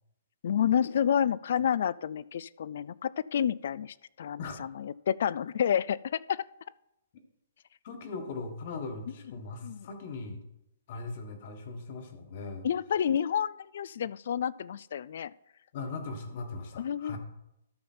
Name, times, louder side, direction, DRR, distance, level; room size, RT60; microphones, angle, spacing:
voice 1, 0.4-6.4 9.6-9.9 12.6-15.3 16.8-17.2, left 9 dB, 60° left, 22 dB, 0.3 m, -29 dB
voice 2, 7.8-10.4 10.9-12.7 15.7-17.2, left 3 dB, 45° left, 6 dB, 1.5 m, -39 dB
13.0 x 5.6 x 4.4 m, 0.86 s
hypercardioid pair, 160°, 0 cm